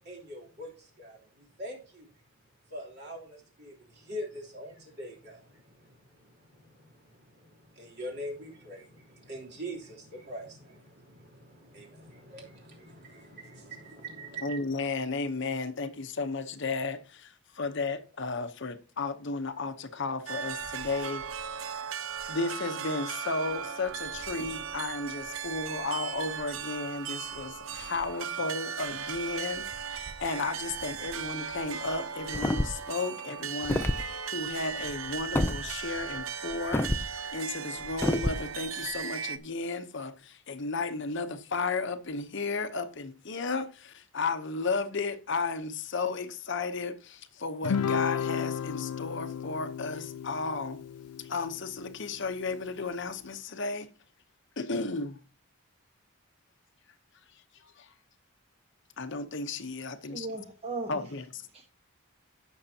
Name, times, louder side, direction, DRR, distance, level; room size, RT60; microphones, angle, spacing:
voice 1, 0.0-2.1 2.7-14.6, equal, 50° right, 3.2 m, -44 dB
voice 2, 14.4-21.2 22.3-37.0 37.3-50.8 51.2-53.9 54.6-55.2 57.6-57.9 59.0-60.3 60.9-61.5, left 3 dB, 55° left, 0.9 m, -34 dB
sound 1, 20.3-39.4, right 7 dB, 65° right, 0.7 m, -37 dB
sound 2, 32.3-32.9 33.6-34.0 35.3-35.6 36.7-37.1 38.0-38.4, left 1 dB, 10° left, 0.4 m, -27 dB
Guitar, 47.6-52.3, left 7 dB, 90° left, 0.4 m, -33 dB
voice 3, 60.0-61.0 61.5-61.6, right 3 dB, 25° right, 1.3 m, -37 dB
16.0 x 6.4 x 2.8 m
head